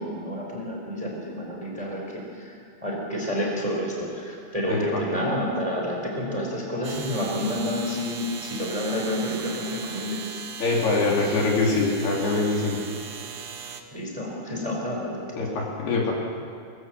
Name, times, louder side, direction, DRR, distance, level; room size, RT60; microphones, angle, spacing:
voice 1, 0.0-2.5 2.8-10.2 13.9-15.4, left 1 dB, 10° right, -1 dB, 4.2 m, -29 dB
voice 2, 4.7-5.0 10.6-12.8 15.4-16.1, left 3 dB, 75° left, -1 dB, 5.3 m, -24 dB
sound 1, 6.8-13.8, right 6 dB, 75° right, 1.3 m, -38 dB
23.0 x 21.5 x 7.7 m, 2.3 s
omnidirectional pair, 4.6 m